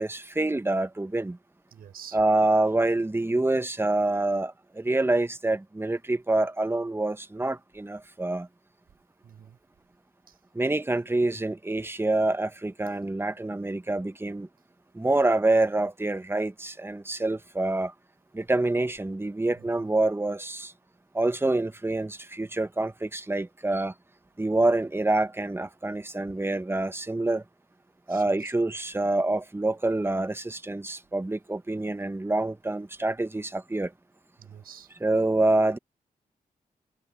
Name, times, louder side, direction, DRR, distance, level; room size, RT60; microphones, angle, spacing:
voice 1, 0.0-1.4 2.1-8.5 10.5-14.5 14.9-17.9 18.3-20.7 21.1-23.9 24.4-27.4 28.1-33.9 35.0-35.8, right 2 dB, 15° right, 1.3 m, -26 dB
voice 2, 1.7-2.2 9.2-9.6 10.3-10.4 19.6-19.7 28.1-28.5 34.4-35.0, right 8 dB, 80° right, 5.9 m, -48 dB
cardioid pair, 55°, 15 cm